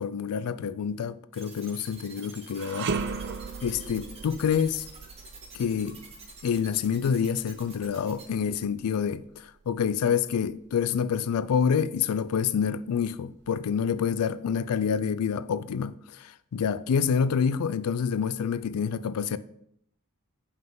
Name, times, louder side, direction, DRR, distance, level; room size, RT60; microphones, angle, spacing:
voice 1, 0.0-3.3 3.6-4.8 5.5-6.0 6.4-19.4, left 7 dB, 80° left, 0.4 m, -27 dB
sound 1, 1.3-8.2, right 4 dB, 30° right, 1.3 m, -47 dB
sound 2, 2.5-11.8 12.2-12.4 13.3-14.1, right 5 dB, 55° right, 0.5 m, -39 dB
7.8 x 5.5 x 3.8 m
head